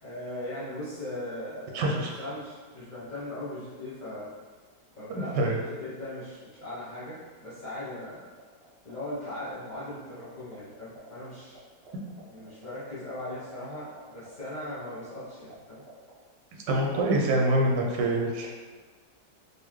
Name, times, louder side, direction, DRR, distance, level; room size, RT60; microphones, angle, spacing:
voice 1, 0.0-4.3 5.0-8.3 8.8-11.6 12.3-15.8, left 1 dB, 35° left, -11 dB, 0.8 m, -39 dB
voice 2, 1.7-2.1 5.1-5.6 16.7-18.5, right 1 dB, 85° right, -1 dB, 1.2 m, -25 dB
sound 1, 8.4-8.9 9.2-11.3 11.5-11.6 11.8-15.5 15.8-16.1, right 3 dB, 45° right, 0.9 m, -52 dB
4.0 x 2.6 x 3.0 m, 1.4 s
omnidirectional pair, 1.8 m